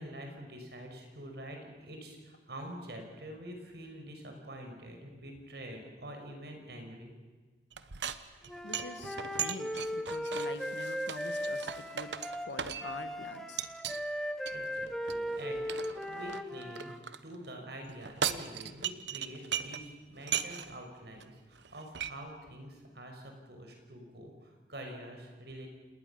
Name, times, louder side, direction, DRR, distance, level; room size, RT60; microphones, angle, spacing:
voice 1, 0.0-7.1 14.5-16.9 17.2-25.7, right 1 dB, 70° right, 3 dB, 5.9 m, -46 dB
sound 1, 7.7-13.1 13.6-14.0 14.4-17.2 17.9-19.9 20.2-20.8 21.2-21.3 21.5-22.1, right 8 dB, 85° right, 1.1 m, -38 dB
Wind instrument woodwind instrument, 8.5-17.0, equal, ahead, 1.2 m, -37 dB
voice 2, 8.6-12.1 12.5-13.7, left 2 dB, 90° left, 9 dB, 2.0 m, -45 dB
29.0 x 19.5 x 7.2 m, 1.4 s
head